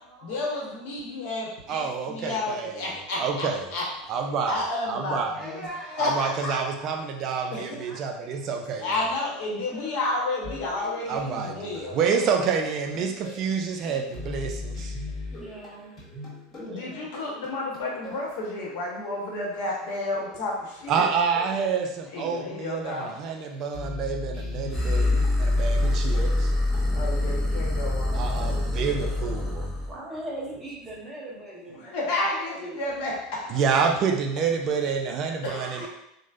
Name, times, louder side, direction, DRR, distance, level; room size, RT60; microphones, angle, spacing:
voice 1, 0.2-6.6 7.5-7.8 8.8-12.0 16.7-21.1 22.1-23.2 26.9-28.9 31.7-33.9 35.4-35.9, left 2 dB, 60° left, -3 dB, 0.9 m, -31 dB
voice 2, 1.7-2.7 3.2-3.6 4.1-4.6 4.9-5.4 6.0-8.8 11.1-11.5 11.9-14.9 20.9-26.5 28.1-29.7 33.5-35.7, right 6 dB, 45° right, 3 dB, 0.3 m, -28 dB
voice 3, 5.3-6.1 6.8-7.5 7.9-8.6 9.7-11.7 11.9-12.5 15.3-15.9 16.5-17.1 29.8-32.0 32.3-32.8 35.8-35.9, right 1 dB, 10° right, -5 dB, 1.1 m, -41 dB
sound 1, 10.4-27.2, left 2 dB, 40° left, 1.4 m, -41 dB
sound 2, 24.7-29.9, left 2 dB, 20° left, 0.9 m, -25 dB
3.1 x 2.0 x 2.4 m, 0.83 s
hypercardioid pair, 80°, 0 cm